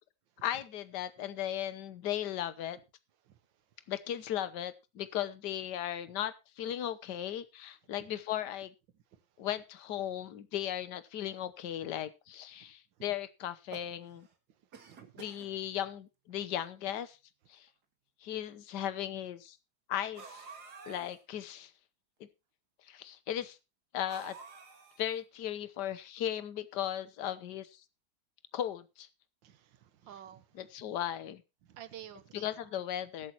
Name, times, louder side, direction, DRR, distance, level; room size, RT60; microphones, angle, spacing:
voice 1, 0.4-2.8 3.9-8.7 9.4-14.3 15.2-17.2 17.5-17.7 18.2-19.6 19.9-20.5 20.9-21.7 22.2-22.3 22.9-23.6 23.9-24.4 25.0-27.8 28.5-29.1 30.5-31.4 32.3-33.3, left 11 dB, 60° left, 1.5 m, -37 dB
sound 1, 13.4-14.3 14.7-15.5 16.3-16.4 16.6-16.7 17.7-17.8 20.1-21.2 24.1-25.2, right 4 dB, 55° right, 2.3 m, -50 dB
voice 2, 14.8-15.2 29.4-30.5 31.7-32.7, right 10 dB, 70° right, 1.7 m, -51 dB
21.0 x 8.2 x 3.0 m
omnidirectional pair, 2.2 m